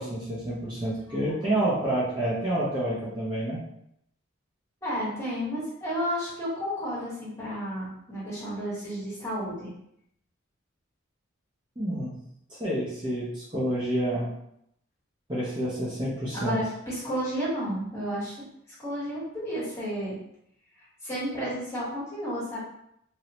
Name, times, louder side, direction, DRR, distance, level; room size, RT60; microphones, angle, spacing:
voice 1, 0.0-3.6 11.8-12.2 12.5-14.3 15.3-16.6, right 1 dB, 25° right, -8 dB, 0.7 m, -28 dB
voice 2, 4.8-9.7 16.3-18.3 18.8-20.2 21.0-22.6, equal, 15° left, -9 dB, 1.5 m, -32 dB
3.1 x 2.7 x 2.9 m, 0.75 s
head